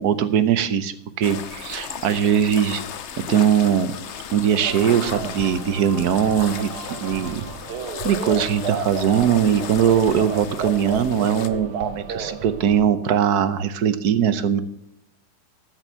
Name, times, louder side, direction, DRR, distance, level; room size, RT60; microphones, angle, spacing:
voice 1, 0.0-2.8 3.2-4.0 4.3-7.4 8.0-14.6, right 8 dB, 60° right, 12 dB, 1.1 m, -21 dB
sound 1, 1.2-11.5, left 8 dB, 90° left, 0.6 m, -36 dB
sound 2, 4.6-12.8, right 5 dB, 90° right, 2.0 m, -32 dB
14.0 x 6.2 x 6.9 m, 0.82 s
omnidirectional pair, 2.2 m